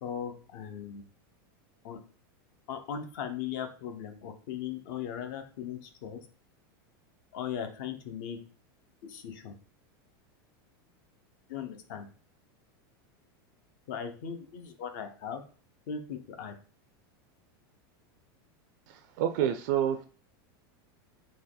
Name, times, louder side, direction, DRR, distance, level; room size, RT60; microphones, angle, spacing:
voice 1, 0.0-1.0 1.8-2.0 2.7-6.2 7.3-8.4 9.0-9.5 11.5-12.1 13.9-15.4 15.9-16.5, left 8 dB, 50° left, 7 dB, 0.8 m, -38 dB
voice 2, 19.2-20.1, right 10 dB, 50° right, 9 dB, 0.4 m, -27 dB
4.1 x 2.9 x 3.8 m, 0.40 s
supercardioid pair, 170°, 12 cm